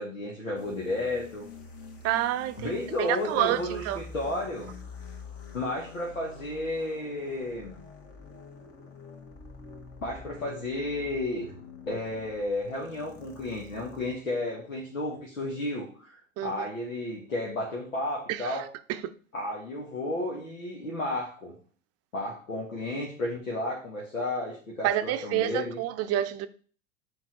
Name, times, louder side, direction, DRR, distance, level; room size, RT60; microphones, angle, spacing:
voice 1, 0.0-1.5 2.6-4.7 5.5-7.8 10.0-11.5 11.9-18.7 19.3-21.5 22.1-25.8, left 2 dB, 85° left, 1.8 m, -32 dB
sound 1, 0.6-14.2, left 4 dB, 35° left, 1.8 m, -47 dB
voice 2, 2.0-4.0 16.4-16.5 18.3-18.6 24.8-26.5, right 13 dB, 40° right, 0.7 m, -28 dB
7.4 x 4.4 x 4.4 m
figure-of-eight pair, 80°, 40 cm